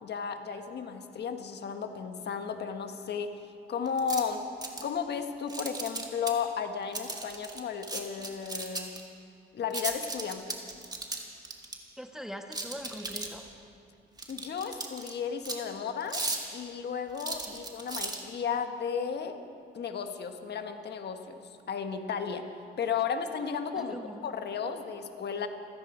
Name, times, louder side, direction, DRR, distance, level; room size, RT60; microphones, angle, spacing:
voice 1, 0.0-3.3 3.7-4.4 4.8-8.9 9.5-10.6 14.3-16.2 16.5-19.4 19.7-21.4 21.7-22.4 22.8-25.5, left 6 dB, 55° left, 6 dB, 1.4 m, -34 dB
sound 1, 3.9-4.2 4.6-5.0 5.5-6.3 6.9-9.0 9.7-11.7 12.5-13.5 14.2-15.1 15.4-15.6 16.0-16.5 17.2-18.2, right 2 dB, 20° right, 2.0 m, -35 dB
voice 2, 12.0-13.4 17.5-17.6 23.8-24.3, equal, ahead, 4 dB, 1.3 m, -42 dB
27.0 x 10.5 x 5.1 m, 2.4 s
cardioid pair, 90°, 20 cm